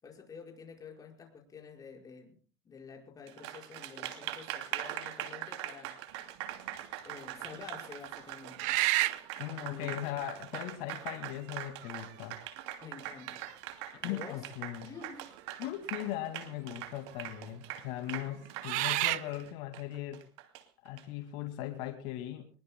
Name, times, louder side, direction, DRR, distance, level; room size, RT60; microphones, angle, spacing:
voice 1, 0.0-2.4 2.6-6.0 7.0-8.8 9.6-10.0 12.8-13.4 14.1-14.5 14.8-15.3, left 5 dB, 25° left, 1 dB, 5.6 m, -49 dB
Applause, 3.3-21.0, right 13 dB, 85° right, 2.8 m, -42 dB
sound 1, 6.4-6.9 7.5-7.6 8.5-9.3 10.6-10.7 11.6-12.1 12.5-12.6 13.2-13.9 15.5-15.6 15.9-16.5 17.2-17.3 18.3-19.3, right 19 dB, 65° right, 0.7 m, -31 dB
voice 2, 9.4-12.4 14.0-14.9 15.6-20.2 20.8-22.5, left 13 dB, 70° left, 5 dB, 2.3 m, -39 dB
25.0 x 21.0 x 2.3 m, 0.36 s
supercardioid pair, 125°, 14 cm